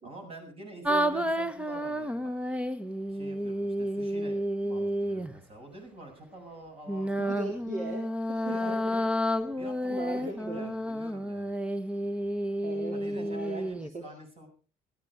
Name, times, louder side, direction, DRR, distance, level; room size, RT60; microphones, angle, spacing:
voice 1, 0.0-2.3 3.1-7.3 8.5-9.1 9.5-11.5 12.9-14.5, right 1 dB, 35° right, 3 dB, 7.7 m, -47 dB
sound 1, 0.8-5.4 6.9-13.9, equal, 5° right, 1.0 m, -31 dB
voice 2, 0.9-1.2 7.2-9.0 9.9-10.7 12.6-13.6 13.9-14.0, right 2 dB, 50° right, 2 dB, 4.0 m, -39 dB
16.5 x 14.5 x 4.9 m, 0.37 s
cardioid pair, 110°, 17 cm